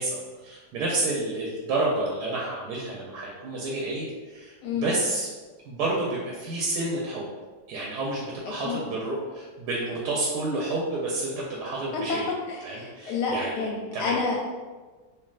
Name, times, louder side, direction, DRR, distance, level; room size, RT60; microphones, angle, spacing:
voice 1, 0.0-4.5 4.8-5.3 5.6-7.2 7.7-12.3 12.6-14.2, right 2 dB, 85° right, -4 dB, 1.2 m, -30 dB
voice 2, 11.9-14.4, left 4 dB, 80° left, -1 dB, 1.2 m, -29 dB
3.3 x 2.6 x 2.3 m, 1.3 s
omnidirectional pair, 1.7 m